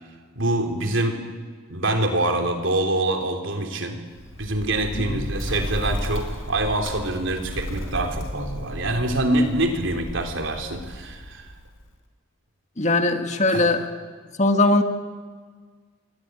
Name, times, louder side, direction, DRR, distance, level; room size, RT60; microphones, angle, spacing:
voice 1, 0.4-1.2 1.7-4.0 4.4-11.5 13.5-13.7, right 1 dB, 60° right, 4 dB, 3.6 m, -25 dB
Bird, 4.1-11.9, equal, 65° left, 4.1 m, -34 dB
voice 2, 12.8-13.9 14.4-14.8, left 2 dB, 35° left, 6 dB, 1.9 m, -20 dB
28.5 x 23.0 x 9.1 m, 1.5 s
head